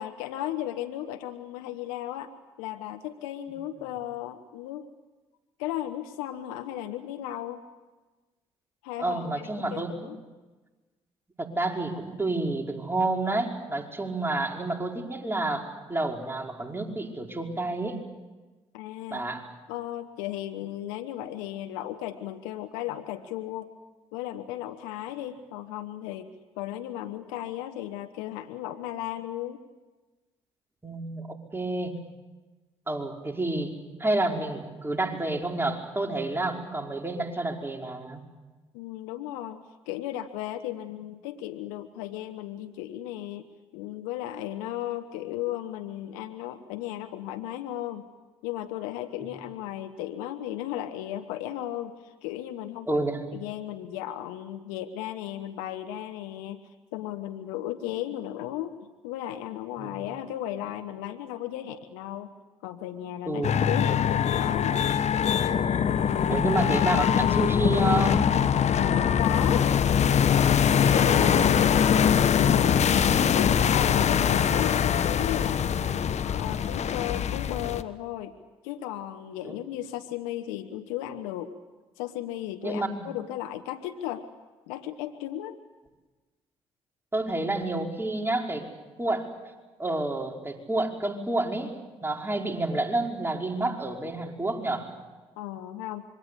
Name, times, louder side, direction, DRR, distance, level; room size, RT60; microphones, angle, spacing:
voice 1, 0.0-2.3 2.6-4.9 5.6-7.6 8.8-10.2 18.7-19.2 19.7-23.7 24.1-26.3 26.6-29.6 38.7-43.5 43.7-48.0 48.4-53.0 53.3-58.7 59.0-62.3 62.6-65.0 68.8-69.7 70.5-72.9 73.3-78.3 78.6-81.5 82.0-84.3 84.7-85.6 95.4-96.0, left 12 dB, 85° left, 8 dB, 1.0 m, -35 dB
voice 2, 9.0-9.9 11.4-18.0 19.1-19.5 30.8-31.9 32.9-33.7 34.0-38.2 52.9-53.2 59.8-59.9 63.2-63.5 65.6-68.3 70.9-71.5 79.4-79.5 82.6-83.1 87.1-88.7 89.0-89.3 89.8-91.7 92.0-94.9, right 2 dB, 15° right, 1 dB, 5.0 m, -29 dB
sound 1, 63.4-77.8, left 8 dB, 55° left, 1.1 m, -23 dB
26.5 x 23.5 x 8.4 m, 1.2 s
hypercardioid pair, 45°, 14 cm